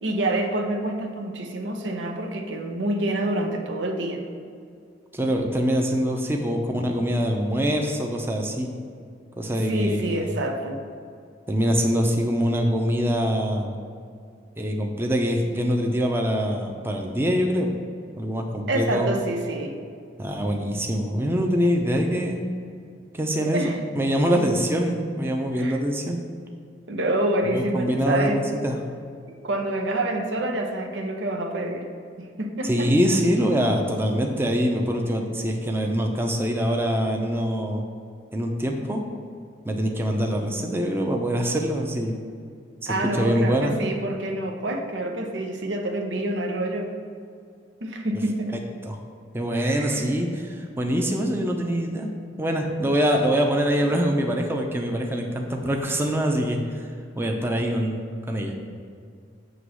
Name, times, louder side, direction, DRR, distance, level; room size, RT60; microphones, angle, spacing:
voice 1, 0.0-4.2 9.5-10.8 18.7-19.7 23.4-23.8 25.5-25.8 26.9-28.4 29.3-31.8 32.2-32.9 42.9-46.9 47.8-48.6 49.7-50.1, right 1 dB, 90° right, 3 dB, 0.9 m, -27 dB
voice 2, 5.1-8.7 9.4-10.4 11.5-13.8 14.6-17.7 18.2-19.1 20.2-22.4 23.1-26.2 27.5-28.8 32.6-37.8 38.3-39.0 39.6-42.1 42.8-43.7 48.9-49.0 49.3-52.1 52.4-56.9 57.2-58.5, equal, 15° right, 2 dB, 0.6 m, -24 dB
7.8 x 3.0 x 6.2 m, 2.3 s
head